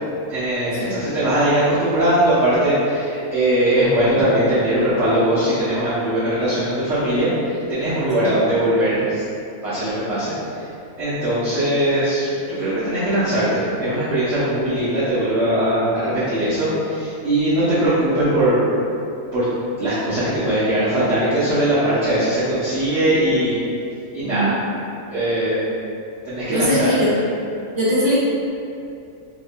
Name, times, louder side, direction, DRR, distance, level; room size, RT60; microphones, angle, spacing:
voice 1, 0.3-9.2 9.6-10.3 11.0-12.3 12.6-18.6 19.3-19.5 19.8-23.6 24.1-24.6 25.1-25.6 26.2-26.9, right 1 dB, 60° right, -12 dB, 0.8 m, -20 dB
voice 2, 24.2-24.5 26.5-27.1 27.7-28.1, equal, 25° right, -13 dB, 1.0 m, -21 dB
2.7 x 2.1 x 2.5 m, 2.6 s
omnidirectional pair, 1.5 m